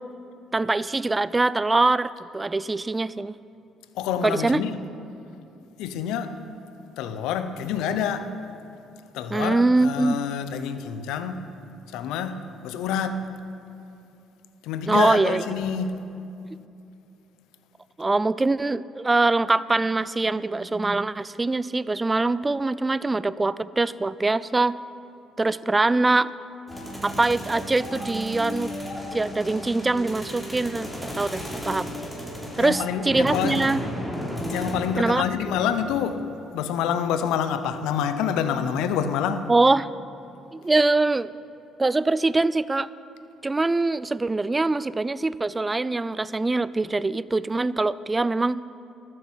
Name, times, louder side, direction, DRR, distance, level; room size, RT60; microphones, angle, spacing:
voice 1, 0.5-3.4 4.2-4.6 9.3-10.2 14.9-15.4 18.0-24.7 25.4-26.3 27.0-28.7 29.1-31.9 32.6-33.8 35.0-35.2 39.5-39.9 40.5-41.3 41.8-42.9 43.4-48.6, right 3 dB, 20° right, 0.4 m, -23 dB
voice 2, 3.9-4.8 5.8-6.4 7.0-8.3 9.1-11.5 11.9-13.4 14.6-16.1 32.6-33.6 34.5-36.3 36.5-39.5, left 8 dB, 80° left, 0.7 m, -27 dB
sound 1, 26.7-36.0, equal, 5° left, 3.4 m, -34 dB
12.5 x 7.8 x 7.3 m
supercardioid pair, 60°, 0 cm